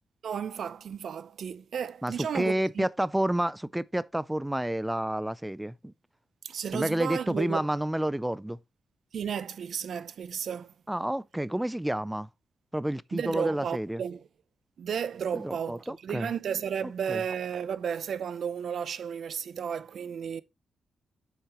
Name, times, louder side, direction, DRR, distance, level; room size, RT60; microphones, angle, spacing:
voice 1, 0.2-2.9 6.4-7.7 9.1-10.7 13.1-14.3 14.8-20.4, right 7 dB, 65° right, 0.6 m, -33 dB
voice 2, 2.0-5.9 6.7-8.6 10.9-12.3 12.7-14.0 15.3-16.3 16.8-17.2, right 1 dB, 5° right, 0.4 m, -30 dB
8.2 x 6.5 x 3.0 m
cardioid pair, 120°, 0 cm